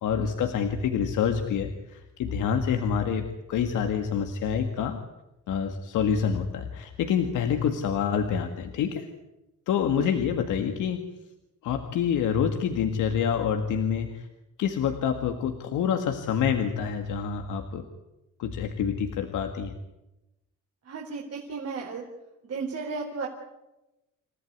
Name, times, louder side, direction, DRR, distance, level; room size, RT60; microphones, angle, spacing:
voice 1, 0.0-5.0 5.5-9.1 9.7-11.0 11.6-14.3 14.6-17.8 18.4-19.7, left 7 dB, 85° left, 5 dB, 2.0 m, -27 dB
voice 2, 20.8-22.0 22.4-23.3, right 4 dB, 55° right, 0 dB, 4.1 m, -34 dB
28.0 x 14.5 x 9.7 m, 0.98 s
cardioid pair, 90°, 30 cm